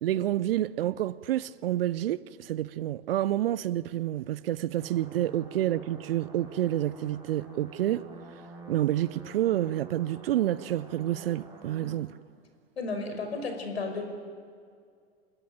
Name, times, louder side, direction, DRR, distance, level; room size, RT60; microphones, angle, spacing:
voice 1, 0.0-8.0 8.7-12.1, right 13 dB, 60° right, 0.8 m, -29 dB
sound 1, 4.8-11.9, right 2 dB, 10° right, 5.9 m, -48 dB
voice 2, 12.8-14.0, left 3 dB, 75° left, 5.4 m, -33 dB
27.5 x 20.0 x 8.9 m
figure-of-eight pair, 90°, 32 cm